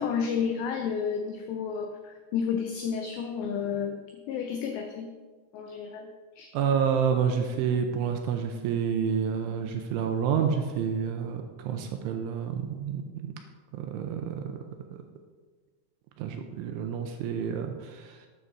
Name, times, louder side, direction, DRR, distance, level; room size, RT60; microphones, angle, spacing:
voice 1, 0.0-4.0 4.3-5.1 5.5-6.1 6.4-6.5, left 6 dB, 85° left, 4 dB, 2.5 m, -31 dB
voice 2, 6.5-13.3 13.7-14.6 14.9-15.0 16.2-18.3, right 7 dB, 85° right, 5 dB, 2.9 m, -29 dB
12.5 x 9.5 x 4.0 m, 1.4 s
omnidirectional pair, 5.9 m